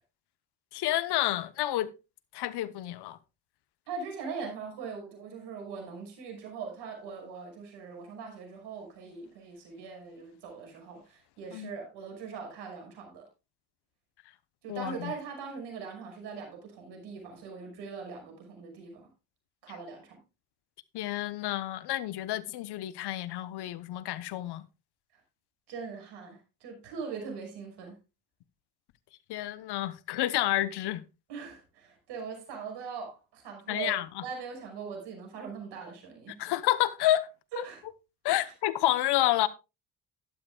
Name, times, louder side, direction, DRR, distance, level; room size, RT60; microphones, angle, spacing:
voice 1, 0.7-1.9 2.3-3.2 11.5-11.7 14.7-15.1 20.9-24.6 29.3-31.0 33.7-34.2 36.4-37.3 38.2-39.5, left 14 dB, 70° left, 1.0 m, -29 dB
voice 2, 3.9-13.2 14.6-19.1 19.6-20.2 25.7-28.0 31.3-36.3 37.5-37.8 38.4-38.5, right 5 dB, 75° right, 5.8 m, -41 dB
12.5 x 12.0 x 2.4 m
hypercardioid pair, 55°, 41 cm